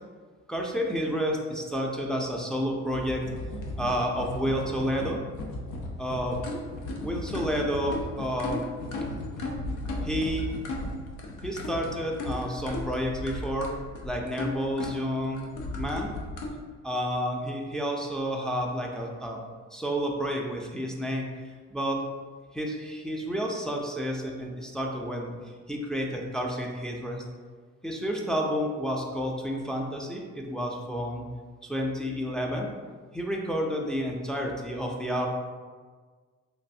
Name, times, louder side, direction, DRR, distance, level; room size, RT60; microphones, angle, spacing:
voice 1, 0.5-3.2 3.8-5.2 6.0-6.4 7.0-8.7 10.0-10.5 11.4-13.7 14.0-16.1 16.8-19.4 19.7-21.3 21.7-22.0 22.5-25.3 25.7-27.2 27.8-31.2 31.6-32.7 33.1-35.3, equal, ahead, -1 dB, 0.4 m, -30 dB
sound 1, 2.9-16.5, left 1 dB, 80° left, 0.6 m, -35 dB
3.1 x 2.5 x 2.6 m, 1.5 s
cardioid pair, 90°, 30 cm